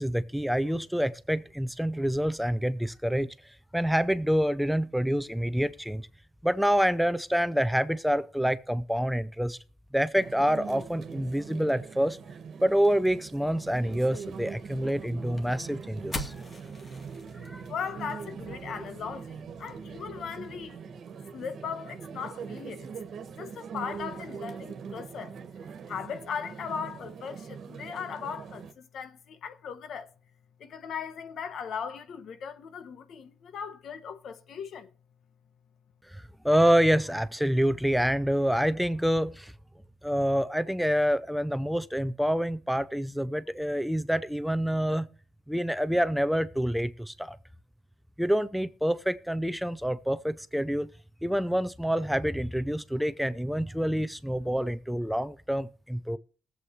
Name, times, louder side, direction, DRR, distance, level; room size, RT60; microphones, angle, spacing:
voice 1, 0.0-3.3 3.7-6.1 6.4-9.6 9.9-12.2 12.6-16.3 17.4-17.6 36.1-39.5 40.0-45.1 45.5-47.4 48.2-50.9 51.2-56.2, equal, ahead, 0.6 m, -27 dB
sound 1, 10.1-28.7, right 6 dB, 60° right, 1.5 m, -42 dB
sound 2, 14.0-20.7, left 2 dB, 30° left, 1.8 m, -45 dB
voice 2, 17.7-20.8 21.3-22.9 23.4-25.3 25.9-30.1 30.6-34.9, left 7 dB, 65° left, 1.1 m, -38 dB
20.0 x 7.8 x 3.2 m
cardioid pair, 90°, 0 cm